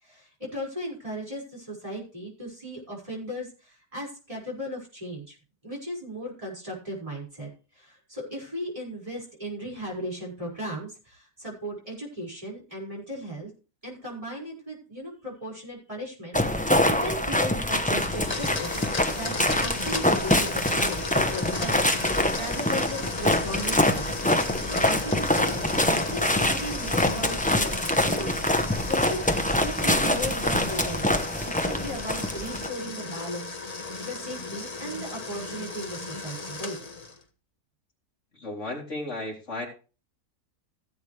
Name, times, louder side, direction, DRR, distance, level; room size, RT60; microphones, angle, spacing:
voice 1, 0.0-5.4 5.6-13.5 13.8-24.1 24.4-28.3 28.6-36.8, equal, 20° right, -3 dB, 5.9 m, -37 dB
sound 1, 16.3-32.7, left 1 dB, 5° left, 0.7 m, -25 dB
Domestic sounds home sounds, 18.0-37.2, left 3 dB, 25° left, 1.1 m, -35 dB
voice 2, 38.3-39.7, left 2 dB, 50° left, -1 dB, 3.9 m, -34 dB
17.0 x 8.3 x 3.4 m, 0.34 s
omnidirectional pair, 1.7 m